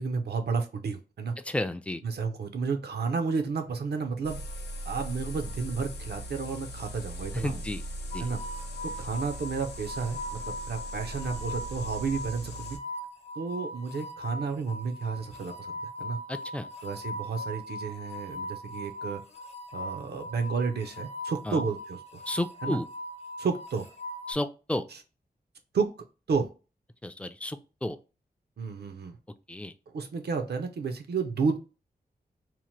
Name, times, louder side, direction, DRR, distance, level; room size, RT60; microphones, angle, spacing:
voice 1, 0.0-1.3 2.0-4.4 4.9-7.6 8.2-8.4 8.8-12.8 13.4-16.2 16.8-19.2 19.7-22.0 22.6-22.8 23.4-23.9 24.9-25.0 25.7-25.9 26.3-26.5 28.6-29.2 29.9-31.6, right 5 dB, 75° right, 0.6 m, -31 dB
voice 2, 1.4-2.0 7.3-7.8 8.1-8.3 16.3-16.7 21.5-21.6 22.3-22.9 24.3-24.8 27.0-28.0 29.5-29.7, left 1 dB, 5° left, 0.3 m, -32 dB
sound 1, 4.2-12.8, equal, 85° left, 0.5 m, -39 dB
sound 2, 8.1-24.3, equal, 40° left, 0.7 m, -40 dB
2.9 x 2.1 x 3.0 m
wide cardioid pair, 70°, 17 cm